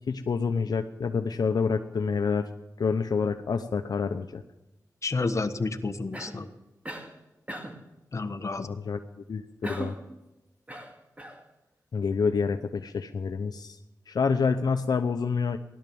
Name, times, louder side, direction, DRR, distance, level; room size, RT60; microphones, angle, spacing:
voice 1, 0.1-2.5 2.8-4.4 8.6-9.0 9.3-9.9 11.9-13.8 14.1-15.6, left 5 dB, 75° left, 6 dB, 0.8 m, -27 dB
voice 2, 5.0-6.5 8.1-8.7, left 3 dB, 45° left, 7 dB, 1.3 m, -30 dB
Cough, 6.1-6.5 6.8-7.1 7.5-7.9 9.6-10.1 10.7-11.4, right 1 dB, 20° right, 2.2 m, -38 dB
16.5 x 12.0 x 7.0 m, 1.0 s
wide cardioid pair, 70°, 7 cm